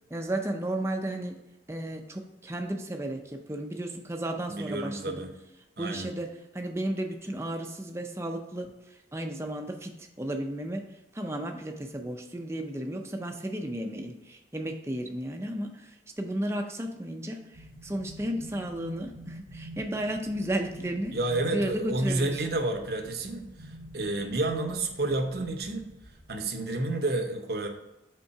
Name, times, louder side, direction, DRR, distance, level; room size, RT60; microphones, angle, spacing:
voice 1, 0.1-1.3 1.7-5.3 5.8-8.7 9.1-10.8 11.1-21.2 21.5-22.3, right 1 dB, 15° right, 3 dB, 0.5 m, -33 dB
voice 2, 4.5-5.3 5.8-6.1 21.1-25.9 26.3-27.7, right 2 dB, 60° right, 4 dB, 0.8 m, -30 dB
sound 1, 17.5-26.4, equal, 25° left, 1.8 m, -48 dB
5.4 x 3.8 x 5.7 m, 0.94 s
head